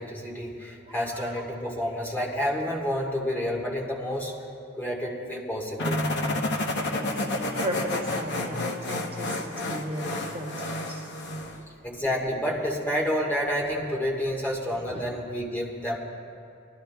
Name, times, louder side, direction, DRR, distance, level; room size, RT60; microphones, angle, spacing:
voice 1, 0.0-4.3 4.8-6.0 11.8-16.0, equal, 10° left, -3 dB, 1.5 m, -29 dB
voice 2, 0.8-1.3 6.5-6.7 7.0-10.5 10.9-11.1 14.9-15.0, equal, 30° right, -1 dB, 0.8 m, -36 dB
sound 1, 5.8-11.6, left 1 dB, 55° left, 0.9 m, -30 dB
22.5 x 11.5 x 2.3 m, 2.5 s
head